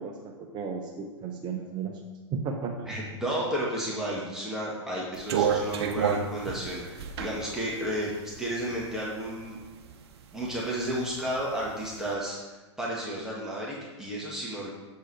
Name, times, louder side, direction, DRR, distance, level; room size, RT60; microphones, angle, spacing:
voice 1, 0.0-2.0 2.3-2.9, right 5 dB, 30° right, 2 dB, 0.8 m, -34 dB
voice 2, 2.8-8.1 8.4-9.6 10.3-12.4 12.8-14.7, right 1 dB, 5° right, -6 dB, 1.6 m, -32 dB
sound 1, 5.2-9.1 9.6-10.6 10.9-11.9, right 7 dB, 60° right, 0.8 m, -30 dB
7.6 x 4.7 x 4.7 m, 1.2 s
figure-of-eight pair, 105°, 15 cm